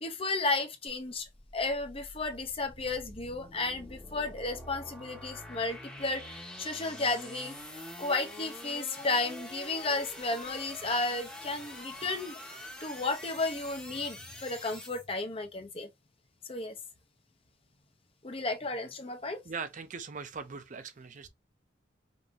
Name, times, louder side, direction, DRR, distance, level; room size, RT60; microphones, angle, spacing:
voice 1, 0.0-1.3 1.5-7.6 8.0-12.4 12.8-15.9 16.5-16.7 18.2-19.4, left 3 dB, 30° left, 0.8 m, -33 dB
sound 1, 0.9-15.1, left 1 dB, 5° left, 1.5 m, -46 dB
voice 2, 19.4-21.3, right 5 dB, 40° right, 0.5 m, -40 dB
5.3 x 2.7 x 2.7 m
head